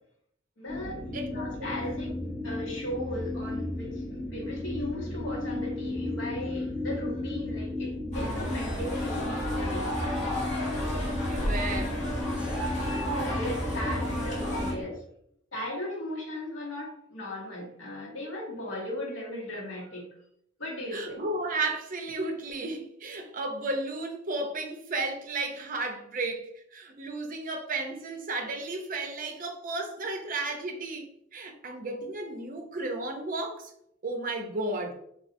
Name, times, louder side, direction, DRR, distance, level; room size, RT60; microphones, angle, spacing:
voice 1, 0.6-2.2 2.4-10.2 12.9-15.0 15.5-20.1 20.6-21.2, left 1 dB, 70° left, 1.0 m, -37 dB
sound 1, 0.7-14.8, left 2 dB, 5° left, 0.5 m, -34 dB
voice 2, 1.1-1.7 11.3-12.4 20.9-33.7 34.0-34.9, right 2 dB, 45° right, 0.5 m, -34 dB
sound 2, 8.1-14.7, equal, 40° left, 1.0 m, -32 dB
3.7 x 2.3 x 2.5 m
head